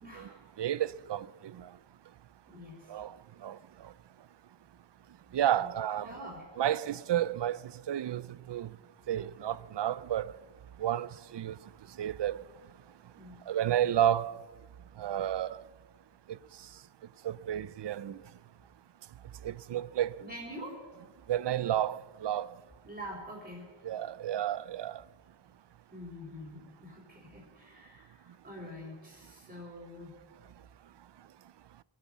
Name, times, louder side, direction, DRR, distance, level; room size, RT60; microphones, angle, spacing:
voice 1, 0.0-0.4 2.5-2.9 5.6-5.7 6.0-6.5 13.2-13.4 20.2-20.8 22.8-23.7 25.9-30.1, equal, 25° right, 3.9 m, -45 dB
voice 2, 0.6-1.3 2.9-3.1 3.4-3.6 5.3-6.1 6.6-7.6 7.9-8.2 8.5-8.7 9.1-10.3 10.8-11.1 11.3-11.5 12.0-12.4 13.5-14.4 15.0-15.6 17.2-18.2 19.4-20.2 21.3-22.5 23.8-25.0, right 11 dB, 75° right, 0.5 m, -31 dB
22.0 x 9.5 x 6.1 m
wide cardioid pair, 95°, 42 cm